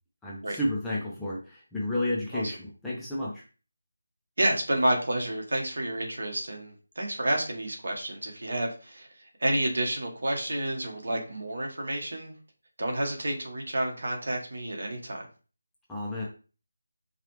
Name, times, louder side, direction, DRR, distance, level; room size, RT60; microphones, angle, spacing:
voice 1, 0.2-3.4 15.9-16.2, left 1 dB, 5° left, -7 dB, 0.5 m, -31 dB
voice 2, 4.4-12.3 12.8-15.3, right 1 dB, 65° right, 1 dB, 1.3 m, -30 dB
4.9 x 2.3 x 3.1 m, 0.35 s
figure-of-eight pair, 175°, 0 cm